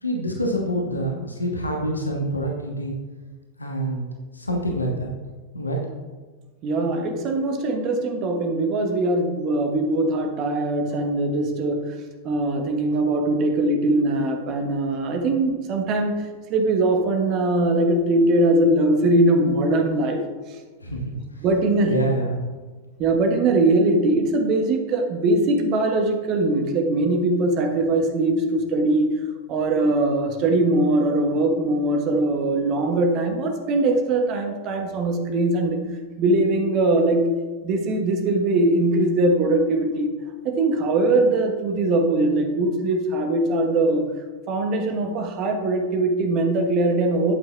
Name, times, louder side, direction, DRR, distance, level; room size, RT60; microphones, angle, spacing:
voice 1, 0.0-2.9 3.6-4.1 4.3-5.1 5.5-5.8 20.8-21.0 21.8-22.4, right 1 dB, 80° left, 0 dB, 1.2 m, -26 dB
voice 2, 6.6-11.9 12.2-16.1 16.5-20.2 21.4-22.0 23.0-29.1 29.5-35.8 36.2-37.3 37.6-40.1 40.4-44.1 44.5-47.3, right 2 dB, 40° right, 4 dB, 1.3 m, -21 dB
11.0 x 8.6 x 2.4 m, 1.4 s
figure-of-eight pair, 90°, 0 cm